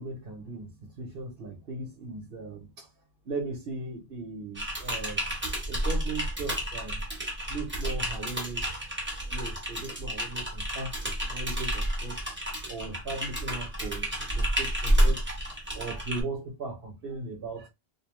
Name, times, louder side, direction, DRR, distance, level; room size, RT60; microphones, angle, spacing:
voice 1, 0.0-2.9 3.2-5.4 5.7-7.0 7.5-8.7 9.3-12.2 12.7-15.2 15.7-17.7, right 3 dB, 65° right, 1.0 m, -38 dB
Typing, 4.6-16.2, equal, 10° right, 0.9 m, -30 dB
2.7 x 2.0 x 2.9 m
omnidirectional pair, 1.1 m